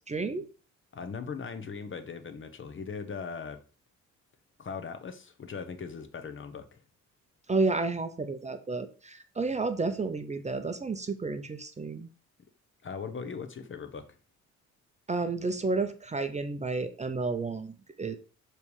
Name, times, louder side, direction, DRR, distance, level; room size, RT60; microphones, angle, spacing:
voice 1, 0.1-0.5 7.5-12.1 15.1-18.2, right 3 dB, 25° right, 8 dB, 0.7 m, -31 dB
voice 2, 0.9-3.6 4.6-6.8 12.8-14.0, left 5 dB, 40° left, 9 dB, 1.0 m, -39 dB
7.0 x 3.3 x 4.8 m, 0.36 s
cardioid pair, 90°, 30 cm